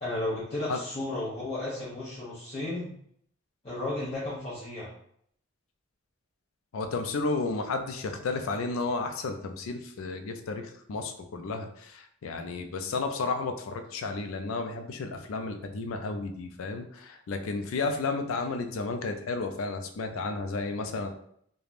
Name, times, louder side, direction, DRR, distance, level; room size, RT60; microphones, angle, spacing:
voice 1, 0.0-2.9 3.6-4.9, left 2 dB, 30° left, -10 dB, 0.7 m, -33 dB
voice 2, 6.7-21.1, left 3 dB, 80° left, 6 dB, 0.4 m, -32 dB
3.2 x 2.2 x 2.5 m, 0.67 s
head